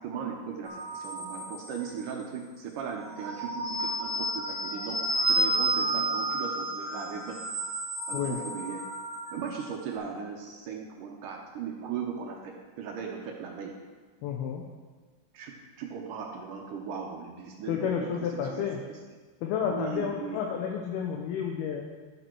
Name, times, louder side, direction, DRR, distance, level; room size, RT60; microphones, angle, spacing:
voice 1, 0.0-7.4 8.1-8.9 9.3-13.8 15.3-18.7 19.7-20.4, right 6 dB, 75° right, 1 dB, 2.0 m, -38 dB
sound 1, 0.6-2.1 3.0-9.6, right 1 dB, 45° left, 1.5 m, -31 dB
voice 2, 14.2-14.6 17.7-18.8 19.4-21.9, left 7 dB, 75° left, 0 dB, 2.7 m, -31 dB
11.0 x 8.5 x 4.6 m, 1.4 s
omnidirectional pair, 4.7 m